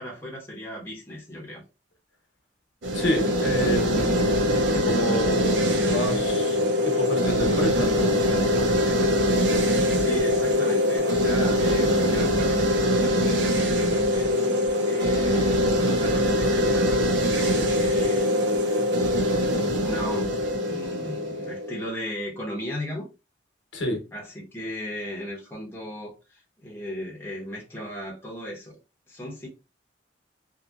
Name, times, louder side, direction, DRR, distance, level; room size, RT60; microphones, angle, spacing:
voice 1, 0.0-1.6 3.8-4.3 9.9-14.6 14.8-17.0 17.3-18.3 19.1-20.3 20.6-23.1 24.1-28.8 29.1-29.5, equal, 10° left, 0.7 m, -36 dB
sound 1, 2.8-21.9, left 1 dB, 70° right, 0.5 m, -23 dB
voice 2, 2.9-4.3 4.7-8.2 23.7-24.0, equal, 80° left, 0.9 m, -29 dB
2.7 x 2.6 x 2.3 m
head